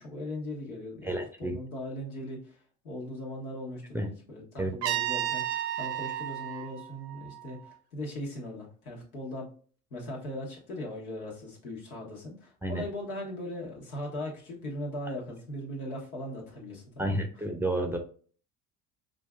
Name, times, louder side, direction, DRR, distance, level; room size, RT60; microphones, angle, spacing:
voice 1, 0.0-9.5 9.9-17.4, left 1 dB, 90° left, -2 dB, 1.3 m, -39 dB
voice 2, 1.0-1.6 3.9-4.1 4.6-4.7 12.6-12.8 17.0-18.0, right 1 dB, 5° right, 4 dB, 0.5 m, -30 dB
Trumpet, 4.8-7.7, right 12 dB, 60° right, 0.7 m, -33 dB
5.1 x 2.5 x 2.3 m, 0.43 s
hypercardioid pair, 65°, 43 cm